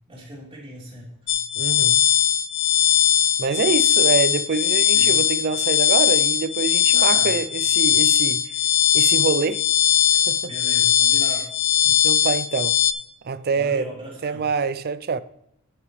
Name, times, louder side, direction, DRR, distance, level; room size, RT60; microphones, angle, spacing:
voice 1, 0.1-1.2 4.9-5.1 6.9-7.4 10.5-11.6 13.5-14.5, right 1 dB, 25° right, 3.1 m, -38 dB
sound 1, 1.3-12.9, left 9 dB, 55° left, 0.5 m, -19 dB
voice 2, 1.6-2.0 3.4-8.4 8.9-9.6 10.3-10.5 11.9-12.8 13.2-13.8 14.2-15.2, right 5 dB, 45° right, 0.4 m, -25 dB
9.1 x 8.8 x 3.2 m
head